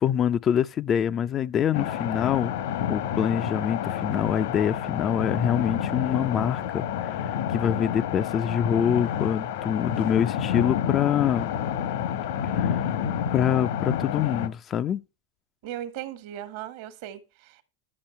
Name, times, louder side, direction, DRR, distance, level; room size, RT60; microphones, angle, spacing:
voice 1, 0.0-2.5 2.9-11.5 12.5-12.9 13.3-15.0, left 8 dB, 25° left, 0.4 m, -25 dB
sound 1, 1.7-14.5, left 9 dB, 70° left, 1.1 m, -29 dB
voice 2, 15.6-17.6, right 11 dB, 60° right, 1.3 m, -37 dB
10.5 x 5.5 x 5.5 m
supercardioid pair, 145°, 0 cm